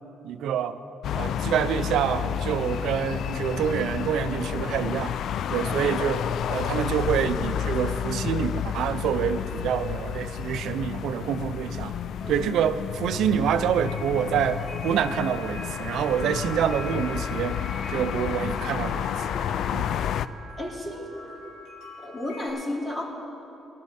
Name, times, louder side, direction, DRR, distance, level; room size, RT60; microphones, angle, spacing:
voice 1, 0.2-0.8 1.1-5.1 5.5-11.9 12.3-17.6 17.9-19.1 19.7-19.9, right 8 dB, 80° right, 11 dB, 0.5 m, -27 dB
sound 1, 1.0-20.3, left 9 dB, 70° left, 0.3 m, -30 dB
voice 2, 5.6-5.9 12.2-12.5 20.6-21.3 22.0-23.0, left 1 dB, 20° left, -3 dB, 3.1 m, -33 dB
sound 2, 13.8-22.5, left 2 dB, 90° left, 3.3 m, -42 dB
18.5 x 12.0 x 4.3 m, 3.0 s
cardioid pair, 90°, 0 cm